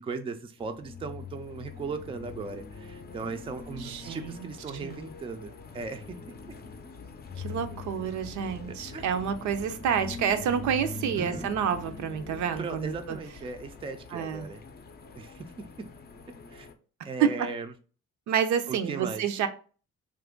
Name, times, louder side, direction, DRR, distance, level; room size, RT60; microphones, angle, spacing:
voice 1, 0.0-6.2 8.7-9.1 11.2-11.5 12.6-14.6 15.2-15.9 16.5-16.7 17.0-17.7 18.7-19.5, right 4 dB, 20° right, 7 dB, 0.4 m, -38 dB
sound 1, 0.6-16.7, left 4 dB, 35° left, 0.5 m, -43 dB
voice 2, 3.8-4.5 4.8-5.0 7.4-13.2 14.1-14.5 17.2-17.3 18.3-19.5, right 8 dB, 70° right, 8 dB, 0.5 m, -29 dB
2.9 x 2.5 x 3.6 m, 0.38 s
cardioid pair, 90°, 30 cm